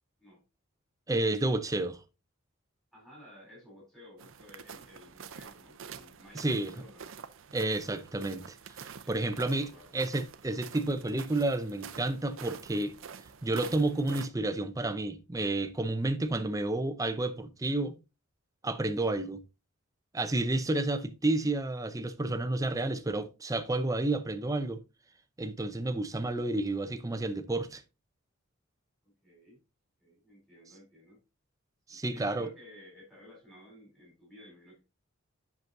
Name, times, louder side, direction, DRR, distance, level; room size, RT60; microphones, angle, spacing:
voice 1, 1.1-2.0 6.3-6.7 7.5-8.6 8.8-12.9 13.4-18.0 18.6-19.4 20.1-24.8 25.4-27.8 31.9-32.5, right 2 dB, 15° right, 0.6 m, -30 dB
voice 2, 2.9-7.2 9.0-10.0 29.0-29.6 30.0-31.2 31.9-34.8, left 1 dB, ahead, 4.3 m, -54 dB
sound 1, 4.2-14.3, right 6 dB, 65° right, 0.6 m, -47 dB
8.0 x 6.0 x 2.6 m
head